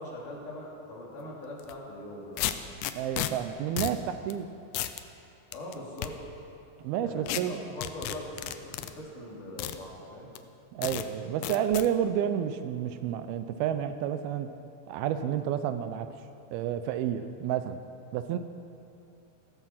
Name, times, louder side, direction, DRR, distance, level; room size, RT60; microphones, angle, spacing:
voice 1, 0.0-2.5 5.5-6.2 7.0-10.3, left 1 dB, 55° left, -4 dB, 4.3 m, -41 dB
sound 1, 1.6-1.7 2.4-3.3 3.8-4.0 4.3-4.4 4.7-5.0 5.5-6.1 7.3-7.4 7.8-8.9 9.6-9.8 10.4-10.5 10.8-11.1 11.4-11.9, left 13 dB, 90° left, 1.8 m, -32 dB
voice 2, 3.0-4.5 6.8-7.6 10.7-14.5 14.9-16.1 16.5-17.8 18.1-18.4, right 9 dB, 80° right, 10 dB, 2.4 m, -30 dB
16.0 x 14.0 x 5.8 m, 2.8 s
omnidirectional pair, 4.5 m